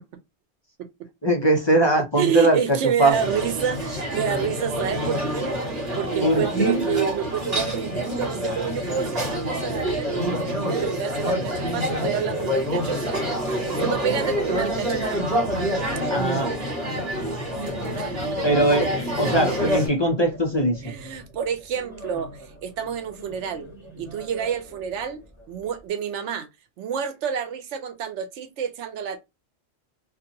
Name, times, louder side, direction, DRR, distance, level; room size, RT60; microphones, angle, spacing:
voice 1, 1.2-3.1 6.2-6.8 16.1-16.5 18.4-18.9 19.2-20.9, right 1 dB, 30° left, 0.5 m, -21 dB
voice 2, 2.2-5.6 5.9-13.2 13.6-15.2 18.0-18.1 20.8-23.7 24.0-25.2 25.5-26.5 26.8-29.2, right 8 dB, 90° right, 0.9 m, -28 dB
sound 1, 3.1-19.9, equal, 60° right, 1.6 m, -27 dB
sound 2, 17.0-25.9, right 1 dB, ahead, 1.3 m, -43 dB
2.6 x 2.5 x 2.6 m
omnidirectional pair, 1.2 m